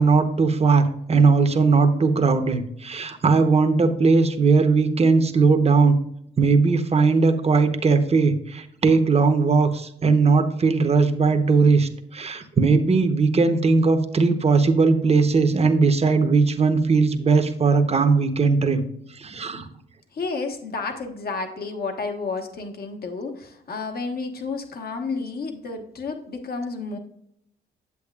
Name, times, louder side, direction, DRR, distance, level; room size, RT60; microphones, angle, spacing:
voice 1, 0.0-6.0 6.4-18.8 19.1-19.7, right 4 dB, 35° right, 8 dB, 1.0 m, -19 dB
voice 2, 20.1-27.0, left 4 dB, 55° left, 3 dB, 1.4 m, -31 dB
8.4 x 7.9 x 2.4 m, 0.73 s
cardioid pair, 70°, 19 cm